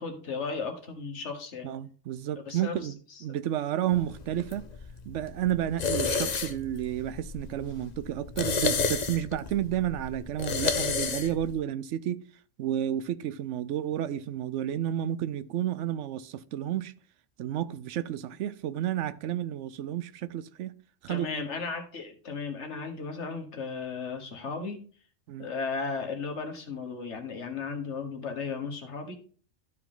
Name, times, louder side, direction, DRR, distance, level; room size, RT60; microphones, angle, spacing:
voice 1, 0.0-1.7 2.3-3.2 21.1-24.8 25.4-29.2, left 4 dB, 65° left, 1.6 m, -35 dB
voice 2, 1.6-3.0 3.2-4.7 5.1-12.2 12.6-16.9 17.4-20.7 21.0-21.3 25.3-25.5, right 11 dB, 75° right, 0.9 m, -31 dB
sound 1, 3.9-11.5, left 5 dB, 40° left, 0.7 m, -32 dB
12.0 x 4.7 x 3.8 m
omnidirectional pair, 1.3 m